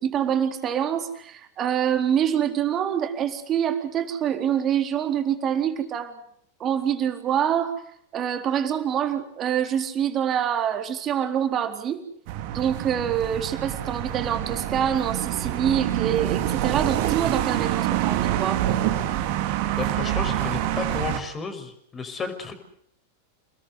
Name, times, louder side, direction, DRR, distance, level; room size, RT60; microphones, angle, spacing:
voice 1, 0.0-6.2 6.6-7.7 8.1-12.0 12.5-18.6, right 9 dB, 30° right, 6 dB, 4.0 m, -25 dB
sound 1, 12.3-21.2, right 12 dB, 45° right, 2.8 m, -26 dB
voice 2, 19.7-22.6, left 5 dB, 20° left, 8 dB, 5.7 m, -33 dB
29.5 x 21.0 x 8.0 m, 0.67 s
figure-of-eight pair, 90°, 0 cm